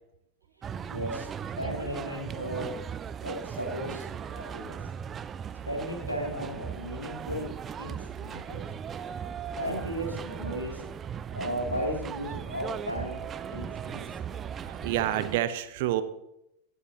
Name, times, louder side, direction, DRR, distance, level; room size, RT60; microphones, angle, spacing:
sound 1, 0.6-15.4, right 8 dB, 25° right, 0.4 m, -38 dB
voice 1, 0.9-1.3 1.6-2.7 3.2-4.8 5.7-8.6 9.5-10.8 11.3-14.1, equal, 85° left, -1 dB, 2.7 m, -35 dB
voice 2, 7.8-8.2 9.3-9.4 13.4-16.0, right 13 dB, 50° right, 12 dB, 0.8 m, -32 dB
16.5 x 8.2 x 2.9 m, 0.82 s
figure-of-eight pair, 90°, 0 cm